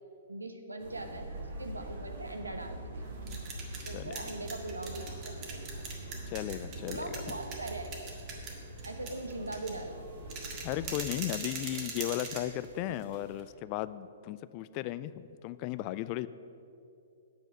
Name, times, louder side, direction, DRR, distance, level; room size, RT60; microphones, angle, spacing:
voice 1, 0.3-1.3 1.6-2.9 3.9-5.6 6.9-7.9 8.8-9.9 10.3-10.4 12.9-13.0, right 2 dB, 80° right, 5 dB, 1.0 m, -40 dB
sound 1, 0.8-11.0, right 1 dB, 60° right, 1.7 m, -43 dB
sound 2, 3.0-13.4, right 4 dB, 35° right, 1.8 m, -43 dB
voice 2, 6.3-7.4 10.6-16.3, left 14 dB, 35° left, 16 dB, 0.3 m, -36 dB
8.8 x 6.1 x 7.7 m, 2.6 s
figure-of-eight pair, 115°, 0 cm